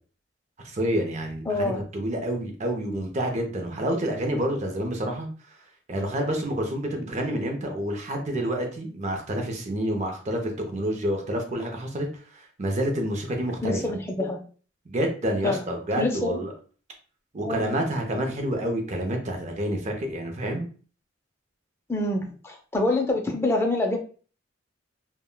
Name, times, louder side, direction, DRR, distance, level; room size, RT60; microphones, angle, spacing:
voice 1, 0.6-5.6 5.9-13.8 14.9-16.5 17.3-20.7, right 1 dB, 35° right, 3 dB, 0.6 m, -28 dB
voice 2, 1.5-1.8 13.6-14.4 15.4-15.7 16.0-16.4 17.4-17.6 21.9-24.0, left 2 dB, 15° left, 2 dB, 0.5 m, -26 dB
3.4 x 2.2 x 2.2 m, 0.39 s
head